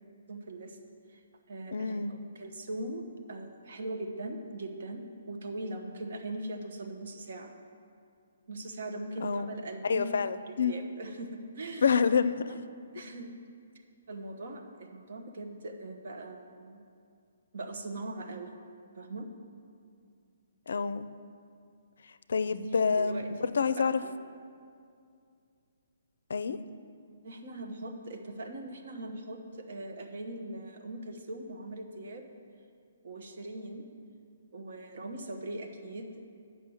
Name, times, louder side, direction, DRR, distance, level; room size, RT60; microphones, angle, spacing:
voice 1, 0.3-0.8 1.1-1.2 1.5-7.5 8.5-10.2 10.5-11.9 12.5-12.6 12.9-13.3 13.7-16.8 17.5-18.6 18.9-19.3 23.0-23.3 23.8-24.1 27.2-32.3 33.0-33.8 34.5-36.1, right 2 dB, 60° right, 4 dB, 1.0 m, -40 dB
voice 2, 1.7-2.1 9.2-9.5 9.8-10.7 11.8-12.5 20.7-21.1 22.3-24.0 26.3-26.6, left 5 dB, 75° left, 13 dB, 0.4 m, -27 dB
8.4 x 5.8 x 6.3 m, 2.3 s
hypercardioid pair, 160°, 0 cm